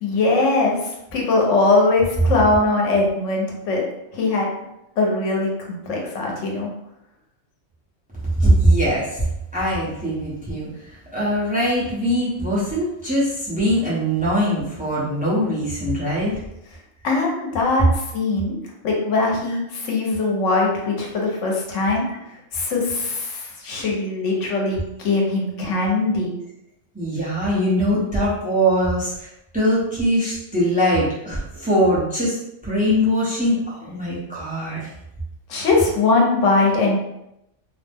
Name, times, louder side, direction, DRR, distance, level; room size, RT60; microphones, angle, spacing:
voice 1, 0.0-3.9 4.1-4.5 5.0-6.7 17.0-18.5 18.8-22.0 22.5-26.4 35.5-37.0, left 3 dB, 85° left, -1 dB, 1.1 m, -21 dB
voice 2, 8.4-9.1 9.5-10.7 11.1-16.3 22.0-22.2 26.9-29.3 29.5-32.4 32.6-34.9, equal, 10° right, -8 dB, 0.7 m, -21 dB
2.7 x 2.1 x 3.4 m, 0.84 s
omnidirectional pair, 1.3 m